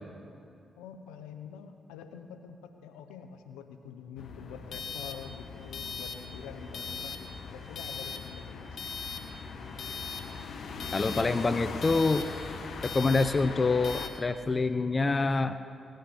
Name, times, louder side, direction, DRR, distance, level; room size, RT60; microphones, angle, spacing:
voice 1, 0.8-8.8, left 7 dB, 90° left, 8 dB, 0.7 m, -46 dB
sound 1, 4.2-14.1, left 4 dB, 65° left, 1.0 m, -39 dB
voice 2, 10.9-12.3 12.8-15.6, left 3 dB, 35° left, 11 dB, 0.5 m, -26 dB
18.0 x 6.5 x 8.2 m, 2.5 s
hypercardioid pair, 40°, 0 cm